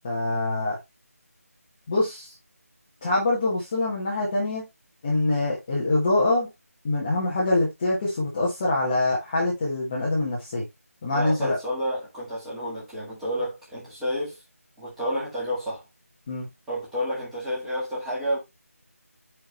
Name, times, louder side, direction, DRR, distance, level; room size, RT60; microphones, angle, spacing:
voice 1, 0.0-0.8 1.9-2.3 3.0-4.7 5.0-6.5 6.8-10.6 11.0-11.6 16.3-16.5, left 2 dB, 15° left, 1.1 m, -24 dB
voice 2, 11.1-14.4 14.8-15.8 16.7-18.4, equal, 5° right, 1.9 m, -30 dB
9.3 x 4.6 x 3.2 m
figure-of-eight pair, 175°, 8 cm